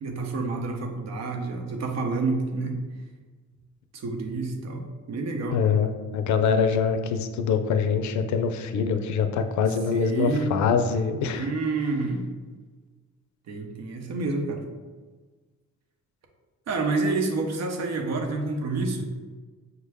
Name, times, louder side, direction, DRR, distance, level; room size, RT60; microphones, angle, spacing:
voice 1, 0.0-2.8 3.9-5.6 9.9-10.5 11.3-12.2 13.5-14.6 16.7-19.1, right 3 dB, 60° right, 3 dB, 0.8 m, -28 dB
voice 2, 5.5-11.5, left 6 dB, 70° left, 8 dB, 0.5 m, -24 dB
5.9 x 2.2 x 3.4 m, 1.4 s
cardioid pair, 90°, 30 cm